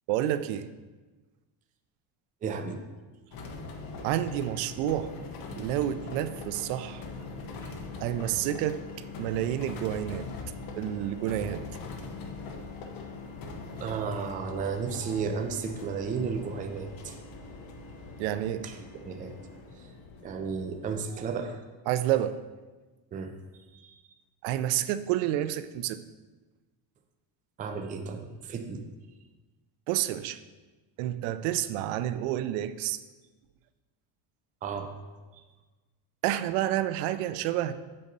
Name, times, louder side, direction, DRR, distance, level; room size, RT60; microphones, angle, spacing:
voice 1, 0.1-0.7 4.0-5.1 5.6-7.0 8.0-8.8 9.2-10.3 10.8-11.7 18.2-18.7 21.9-22.4 24.4-26.0 29.9-30.4 31.0-33.0 36.2-37.7, right 12 dB, 85° right, 13 dB, 0.6 m, -29 dB
voice 2, 2.4-2.8 13.8-17.1 18.6-19.3 19.8-19.9 20.2-21.6 23.1-24.0 27.6-28.8 34.6-34.9, right 5 dB, 20° right, 5 dB, 0.4 m, -34 dB
sound 1, 3.3-21.0, left 3 dB, 50° left, 1.0 m, -42 dB
sound 2, 5.5-14.2, left 16 dB, 30° left, 2.3 m, -49 dB
7.6 x 4.0 x 5.4 m, 1.2 s
cardioid pair, 150°, 47 cm